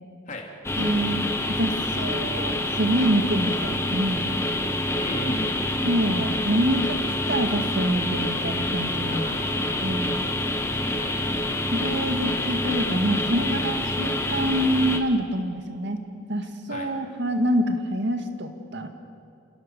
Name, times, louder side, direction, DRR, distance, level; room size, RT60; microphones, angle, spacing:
sound 1, 0.6-15.0, left 1 dB, 15° left, 1.3 m, -27 dB
voice 1, 0.8-1.2 1.6-4.4 5.8-7.0 7.3-9.4 9.8-10.2 11.7-16.0 16.3-18.9, right 1 dB, 60° right, 6 dB, 2.0 m, -26 dB
voice 2, 5.0-5.7 9.0-10.5 11.0-11.3 16.7-16.9, equal, 40° left, 0 dB, 3.2 m, -36 dB
29.5 x 17.0 x 7.0 m, 2.5 s
head